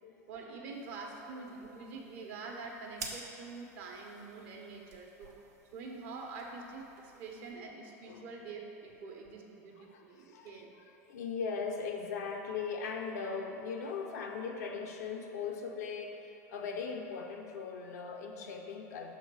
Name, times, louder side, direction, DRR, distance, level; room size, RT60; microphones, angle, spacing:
voice 1, 0.3-5.3 5.7-10.7, right 4 dB, 60° right, 0 dB, 1.1 m, -45 dB
sound 1, 0.7-7.5, right 4 dB, 85° right, 1.0 m, -51 dB
voice 2, 9.8-19.1, left 5 dB, 75° left, 3 dB, 0.7 m, -39 dB
6.0 x 3.8 x 6.1 m, 2.9 s
hypercardioid pair, 90°, 9 cm